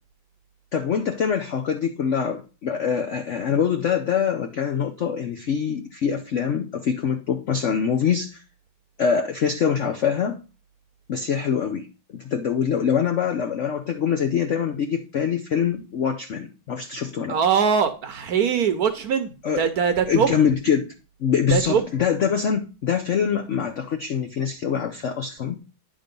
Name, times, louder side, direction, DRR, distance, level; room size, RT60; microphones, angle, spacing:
voice 1, 0.7-8.4 9.0-10.4 11.1-17.4 19.4-19.7 20.1-20.9 21.2-25.6, left 7 dB, 70° left, 0.7 m, -24 dB
voice 2, 17.3-19.3 19.6-20.3 21.5-21.8, right 7 dB, 60° right, 1.1 m, -21 dB
9.8 x 3.8 x 5.2 m
omnidirectional pair, 2.1 m